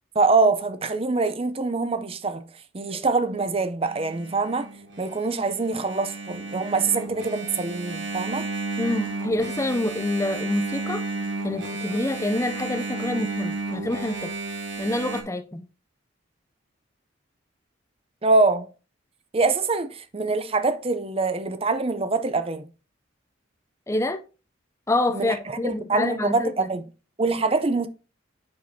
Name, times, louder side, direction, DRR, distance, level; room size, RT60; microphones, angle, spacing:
voice 1, 0.1-2.5 2.7-4.7 5.0-8.5 18.2-18.7 19.3-22.7 25.1-26.8 27.2-27.9, right 3 dB, 30° right, 0.6 m, -24 dB
Engine, 3.8-15.2, right 3 dB, 60° right, 1.4 m, -33 dB
voice 2, 8.8-11.0 11.4-14.3 14.8-15.6 23.9-24.2 24.9-26.7, left 2 dB, 15° left, 0.5 m, -27 dB
8.6 x 6.1 x 2.8 m
head